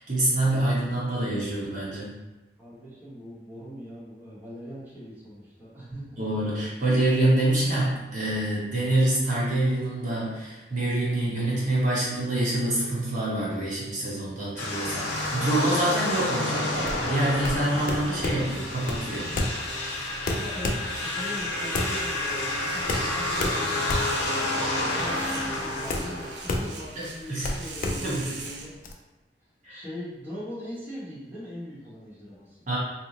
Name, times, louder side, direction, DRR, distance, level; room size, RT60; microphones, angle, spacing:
voice 1, 0.0-2.1 6.2-19.3 27.3-27.5 28.0-28.3 29.6-29.8 32.7-32.8, right 1 dB, 45° right, -7 dB, 0.9 m, -26 dB
voice 2, 2.6-6.2 20.4-28.7 29.7-32.6, equal, 10° right, -10 dB, 0.8 m, -41 dB
sound 1, 14.6-26.7, left 1 dB, 85° left, 0.7 m, -30 dB
sound 2, 16.8-28.9, left 2 dB, 50° left, 0.3 m, -32 dB
sound 3, 23.5-28.7, right 4 dB, 75° right, 0.5 m, -42 dB
2.9 x 2.0 x 3.7 m, 1.0 s
head